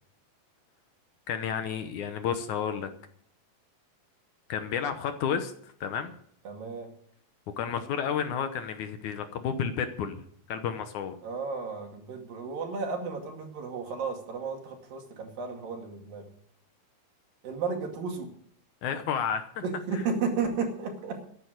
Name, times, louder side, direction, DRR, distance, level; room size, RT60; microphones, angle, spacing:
voice 1, 1.3-2.9 4.5-6.1 7.6-10.2 10.5-11.1 18.8-19.6, left 7 dB, 70° left, 8 dB, 2.1 m, -31 dB
voice 2, 6.5-6.9 11.2-16.3 17.4-18.3 19.6-21.2, right 5 dB, 75° right, 2 dB, 4.1 m, -33 dB
13.0 x 10.0 x 6.5 m, 0.63 s
omnidirectional pair, 4.0 m